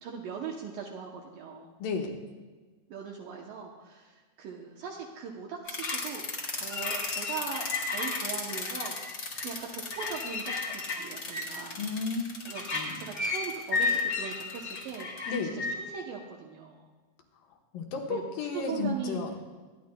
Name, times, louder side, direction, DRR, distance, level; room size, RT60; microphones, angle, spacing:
voice 1, 0.0-1.7 2.9-10.4 10.7-11.8 12.5-15.1 15.4-16.9 18.1-18.2 18.5-19.2, right 6 dB, 75° right, 0 dB, 2.4 m, -40 dB
voice 2, 1.8-2.1 11.8-12.2 12.7-13.0 15.3-15.6 17.7-19.4, left 4 dB, 70° left, 2 dB, 2.6 m, -32 dB
sound 1, 5.7-15.8, left 3 dB, 45° left, 1.6 m, -33 dB
24.0 x 10.0 x 2.2 m, 1.3 s
omnidirectional pair, 4.3 m